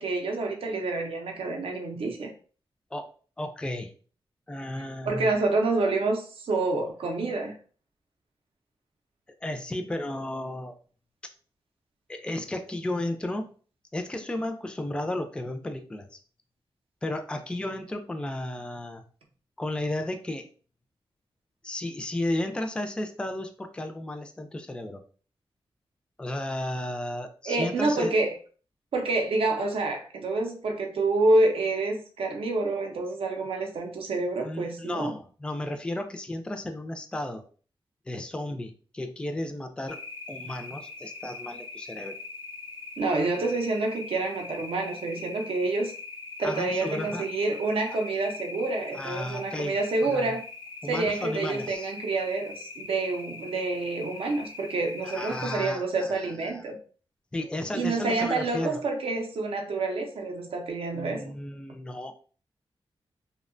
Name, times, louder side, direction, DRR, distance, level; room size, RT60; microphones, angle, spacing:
voice 1, 0.0-2.3 5.1-7.5 27.5-28.3 28.9-35.1 43.0-45.9 46.4-50.4 50.9-56.8 57.7-61.2, right 2 dB, 75° right, 3 dB, 0.5 m, -28 dB
voice 2, 3.4-3.9 4.5-5.3 9.4-10.7 12.1-13.5 13.9-16.2 17.0-19.0 19.6-20.5 21.6-25.0 26.2-28.1 34.4-37.4 38.1-40.0 40.3-42.2 46.4-47.3 48.9-50.3 50.8-51.9 55.0-56.7 57.3-58.8 60.9-62.1, left 1 dB, 10° left, 6 dB, 0.3 m, -33 dB
sound 1, 39.9-55.6, left 3 dB, 70° left, 0.5 m, -41 dB
2.7 x 2.1 x 2.5 m, 0.40 s
wide cardioid pair, 95°, 10 cm